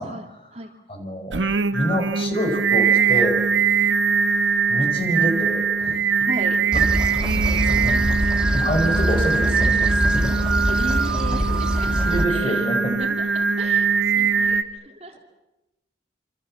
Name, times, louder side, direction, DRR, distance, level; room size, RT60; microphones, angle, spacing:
voice 1, 0.0-0.7 3.9-4.4 6.2-6.9 7.4-7.7 10.7-12.7 13.0-15.2, right 1 dB, 35° right, 3 dB, 3.0 m, -36 dB
voice 2, 0.9-3.4 4.7-6.0 7.1-8.1 8.5-10.3 12.0-12.9, equal, 30° left, 5 dB, 5.0 m, -27 dB
Singing, 1.3-14.6, right 5 dB, 90° right, 1.3 m, -21 dB
sound 1, 6.7-12.2, equal, 5° right, 1.9 m, -24 dB
26.5 x 26.5 x 7.5 m, 0.97 s
head